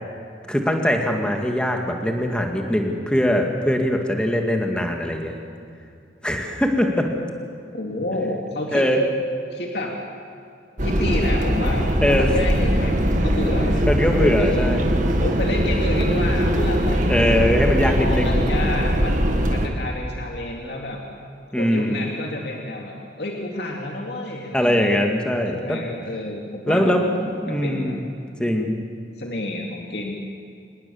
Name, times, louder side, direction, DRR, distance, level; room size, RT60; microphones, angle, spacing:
voice 1, 0.5-5.4 6.2-7.1 8.7-9.0 12.0-12.3 13.9-15.0 17.1-18.3 21.5-22.1 24.5-25.8 26.7-28.0 28.4-28.8, equal, 5° left, 2 dB, 2.1 m, -21 dB
voice 2, 7.7-8.9 9.5-9.9 10.8-13.9 14.4-17.3 18.0-21.0 21.6-24.9 25.5-28.0 29.2-30.1, left 1 dB, 65° left, 0 dB, 2.6 m, -30 dB
sound 1, 10.8-19.7, equal, 45° right, 2.2 m, -21 dB
27.0 x 20.0 x 7.2 m, 2.5 s
head